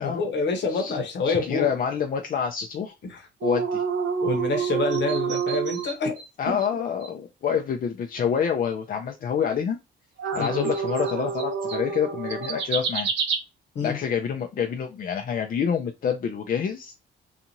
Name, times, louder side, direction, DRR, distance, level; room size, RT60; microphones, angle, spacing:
voice 1, 0.0-1.7 3.0-3.3 4.2-6.6 10.3-10.7 13.7-14.0, left 3 dB, 65° left, 1.0 m, -27 dB
voice 2, 1.3-2.9 3.4-3.8 6.4-9.8 10.3-13.1 13.8-16.9, left 7 dB, 45° left, 0.4 m, -27 dB
sound 1, 3.4-6.3 6.6-6.7 7.0-7.1 10.2-13.4, right 6 dB, 65° right, 0.8 m, -28 dB
2.7 x 2.4 x 2.8 m
cardioid pair, 90°, 20 cm